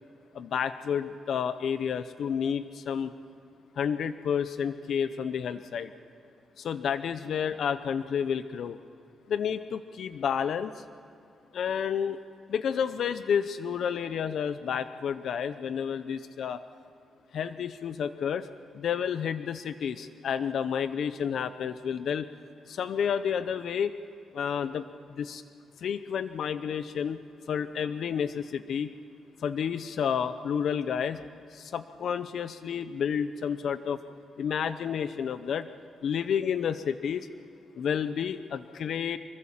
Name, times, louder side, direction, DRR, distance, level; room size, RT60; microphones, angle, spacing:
voice 1, 0.3-3.1 3.8-5.9 6.6-8.8 9.3-10.8 11.5-12.2 12.5-16.6 17.3-18.5 18.7-22.3 22.7-23.9 24.3-24.8 25.1-25.4 25.8-27.2 27.5-28.9 29.4-31.2 31.5-34.0 34.4-35.7 36.0-37.3 37.7-39.2, left 7 dB, 55° left, 12 dB, 0.6 m, -30 dB
25.0 x 23.0 x 7.4 m, 2.5 s
wide cardioid pair, 180°, 0 cm